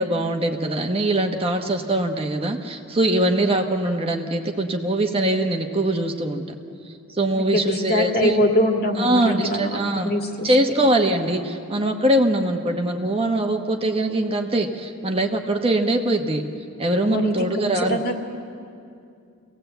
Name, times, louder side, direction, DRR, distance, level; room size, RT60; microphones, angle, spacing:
voice 1, 0.0-6.4 6.8-8.4 9.0-10.1 10.4-16.4 16.8-18.0, right 1 dB, 25° right, 3 dB, 1.2 m, -22 dB
voice 2, 7.3-10.5 17.0-18.2, equal, 45° left, 2 dB, 2.2 m, -23 dB
26.5 x 18.0 x 8.1 m, 2.5 s
head